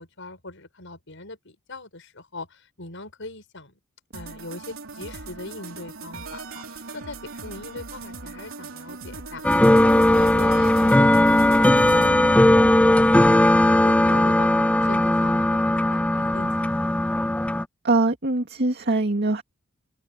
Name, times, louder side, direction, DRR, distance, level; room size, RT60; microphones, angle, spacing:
voice 1, 0.0-3.7 4.1-9.4 9.7-10.6 11.0-13.5 13.8-14.5 14.8-17.2, left 2 dB, 65° left, 7.5 m, -40 dB
sound 1, 4.1-12.1, right 3 dB, 75° right, 3.2 m, -39 dB
sound 2, 9.4-17.6, left 1 dB, 5° left, 0.3 m, -18 dB
voice 2, 17.8-19.4, right 2 dB, 55° right, 2.2 m, -22 dB
open air
head